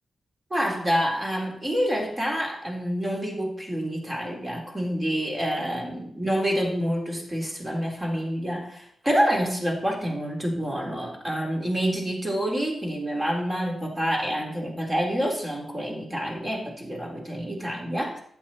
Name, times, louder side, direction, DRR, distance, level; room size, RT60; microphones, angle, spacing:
voice 1, 0.5-18.2, equal, 25° right, 0 dB, 3.6 m, -27 dB
11.0 x 8.1 x 4.3 m, 0.68 s
cardioid pair, 70°, 0 cm